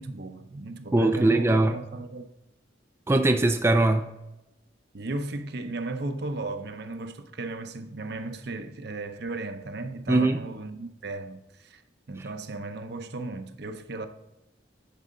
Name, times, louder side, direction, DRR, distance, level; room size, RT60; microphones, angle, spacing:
voice 1, 0.0-2.3 4.9-11.8 12.1-14.1, right 2 dB, 60° right, 0.7 m, -35 dB
voice 2, 0.9-1.8 3.1-4.1 10.1-10.4 12.2-12.3, right 2 dB, 15° right, 0.3 m, -21 dB
10.5 x 4.9 x 3.7 m
head